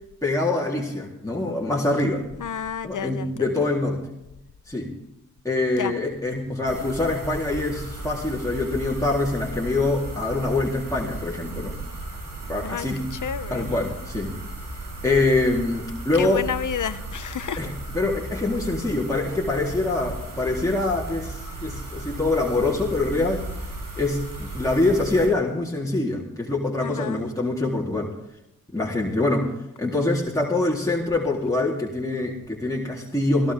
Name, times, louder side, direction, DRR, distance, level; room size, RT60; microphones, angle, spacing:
voice 1, 0.2-2.2 2.8-4.0 4.7-4.9 5.4-11.8 12.5-13.1 13.5-14.4 15.0-16.4 17.6-23.4 24.0-28.1 28.7-29.5 29.8-33.5, left 2 dB, 10° left, -4 dB, 3.8 m, -24 dB
voice 2, 2.4-3.3 5.8-5.9 12.6-12.9 13.2-13.7 16.2-17.7 26.8-27.2, left 8 dB, 75° left, 13 dB, 0.8 m, -30 dB
sound 1, 6.7-25.3, right 2 dB, 85° right, 7.4 m, -35 dB
22.0 x 15.0 x 3.7 m, 0.85 s
cardioid pair, 45°, 31 cm